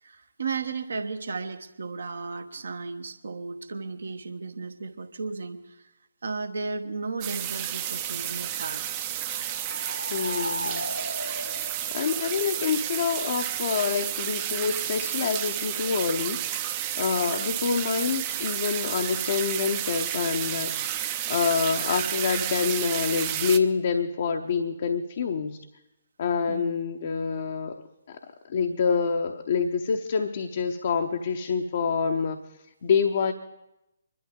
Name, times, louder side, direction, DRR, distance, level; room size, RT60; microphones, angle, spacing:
voice 1, 0.0-5.9 6.2-8.8 26.5-26.9, right 4 dB, 60° right, 8 dB, 1.1 m, -34 dB
sound 1, 7.2-23.6, right 11 dB, 25° right, 0.7 m, -31 dB
sound 2, 9.1-12.7, left 1 dB, 90° left, 2.8 m, -36 dB
voice 2, 10.1-10.9 11.9-20.9 21.3-25.6 26.2-27.8 28.1-28.2 28.5-32.4 32.8-33.3, left 6 dB, 45° left, 4 dB, 0.8 m, -27 dB
25.0 x 12.0 x 3.7 m, 0.90 s
figure-of-eight pair, 135°, 0 cm